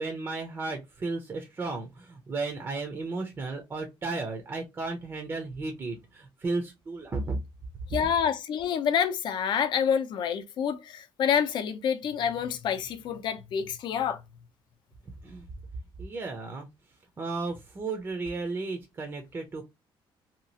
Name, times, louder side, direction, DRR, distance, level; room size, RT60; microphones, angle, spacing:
voice 1, 0.0-7.4 15.2-15.4 16.0-16.7 17.2-19.6, right 3 dB, 25° right, 0.6 m, -34 dB
voice 2, 7.9-14.2, left 8 dB, 55° left, 0.6 m, -27 dB
2.9 x 2.4 x 2.7 m
cardioid pair, 140°, 9 cm